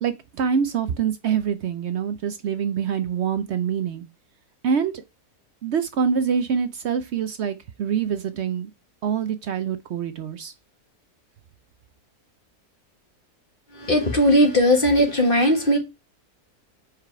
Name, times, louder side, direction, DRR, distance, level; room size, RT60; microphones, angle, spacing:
voice 1, 0.0-4.0 4.6-5.0 5.6-8.7 9.0-10.5, right 7 dB, 65° right, 0.7 m, -25 dB
voice 2, 13.7-15.8, equal, 35° left, 1.7 m, -18 dB
5.0 x 4.8 x 4.5 m
omnidirectional pair, 1.6 m